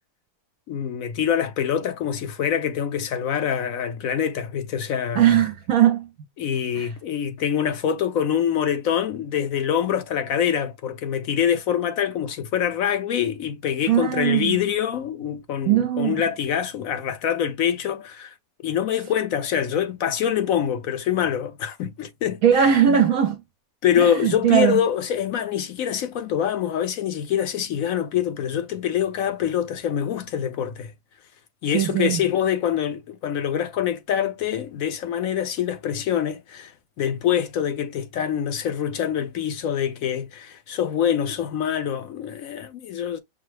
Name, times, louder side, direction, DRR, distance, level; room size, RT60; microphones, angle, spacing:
voice 1, 0.7-5.3 6.4-18.3 18.6-23.0 23.8-30.9 31.6-36.7 37.0-43.2, left 9 dB, 65° left, 1.1 m, -25 dB
voice 2, 5.1-6.1 6.8-6.9 13.9-14.6 15.7-16.2 22.4-23.4 24.0-24.8 31.7-32.2, right 10 dB, 70° right, 1.0 m, -19 dB
5.9 x 2.1 x 3.2 m
omnidirectional pair, 1.6 m